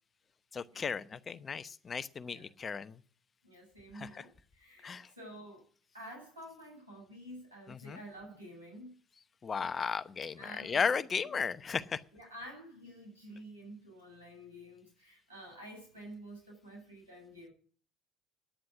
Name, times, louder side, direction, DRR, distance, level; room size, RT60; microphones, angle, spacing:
voice 1, 0.5-2.9 3.9-4.2 4.8-5.1 7.7-8.0 9.4-12.0, left 5 dB, 35° left, 14 dB, 0.8 m, -35 dB
voice 2, 3.4-5.6 5.9-8.9 10.4-10.8 11.2-11.3 12.1-17.5, equal, 85° right, 0 dB, 7.2 m, -50 dB
10.0 x 9.6 x 8.3 m, 0.43 s
figure-of-eight pair, 55°, 0 cm